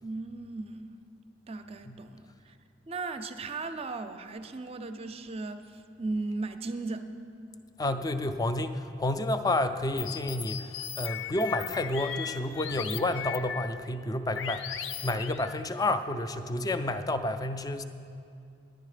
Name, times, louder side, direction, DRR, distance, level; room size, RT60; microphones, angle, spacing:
voice 1, 0.0-1.0 1.5-2.6 2.9-7.1, right 3 dB, 35° right, 9 dB, 0.5 m, -37 dB
voice 2, 7.8-17.8, left 2 dB, 20° left, 10 dB, 0.4 m, -30 dB
sound 1, 10.0-13.9 14.3-15.7, left 9 dB, 80° left, 0.4 m, -38 dB
10.5 x 10.5 x 5.0 m, 2.4 s
head